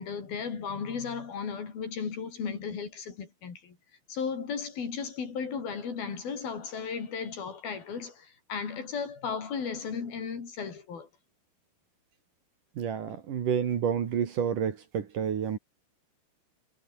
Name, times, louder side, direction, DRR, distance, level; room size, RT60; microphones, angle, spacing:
voice 1, 0.0-3.8 4.1-11.1, left 6 dB, 65° left, 6.0 m, -35 dB
voice 2, 12.8-15.6, right 8 dB, 55° right, 3.4 m, -29 dB
omnidirectional pair, 4.7 m